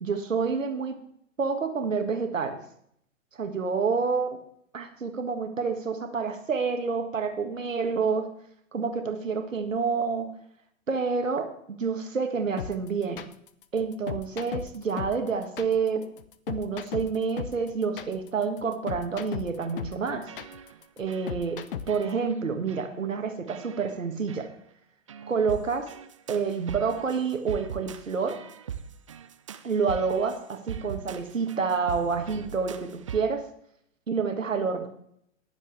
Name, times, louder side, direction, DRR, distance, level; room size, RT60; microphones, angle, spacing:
voice 1, 0.0-1.0 1.4-2.6 3.3-4.4 4.7-8.3 8.7-10.3 10.9-13.2 13.7-16.0 16.5-20.3 21.0-21.6 21.9-24.5 25.3-25.9 26.3-28.4 29.6-33.4 34.1-34.9, right 5 dB, 70° right, 6 dB, 1.7 m, -28 dB
sound 1, 12.6-22.1, left 9 dB, 40° left, 0.8 m, -36 dB
sound 2, 19.6-19.9 20.3-20.8 21.1-21.5 21.9-22.4 22.7-22.9 23.5-24.0 24.3-24.5 25.1-33.2, right 8 dB, 25° right, 0.4 m, -41 dB
19.5 x 7.3 x 3.3 m, 0.69 s
figure-of-eight pair, 115°, 40 cm